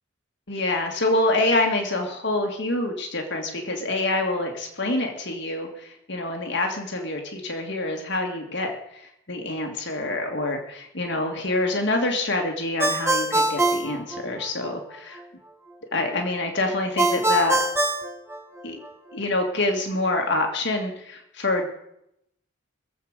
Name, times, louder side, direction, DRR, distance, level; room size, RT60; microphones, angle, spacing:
voice 1, 0.5-15.2 15.9-17.6 18.6-18.8 19.1-21.7, left 2 dB, 60° left, 2 dB, 1.9 m, -26 dB
Ringtone, 12.8-14.7 17.0-18.9, right 2 dB, 15° right, 1.2 m, -23 dB
20.5 x 7.7 x 6.6 m, 0.79 s
head